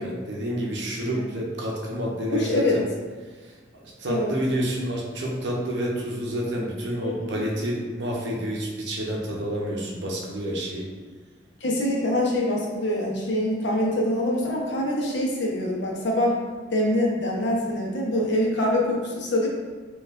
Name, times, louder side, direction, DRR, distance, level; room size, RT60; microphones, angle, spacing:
voice 1, 0.0-2.8 3.7-10.9, equal, 70° right, -2 dB, 0.6 m, -29 dB
voice 2, 2.3-2.8 4.1-4.3 7.0-7.3 11.6-16.4 16.7-19.5, left 1 dB, 70° left, -1 dB, 0.7 m, -24 dB
4.2 x 2.4 x 2.4 m, 1.4 s
head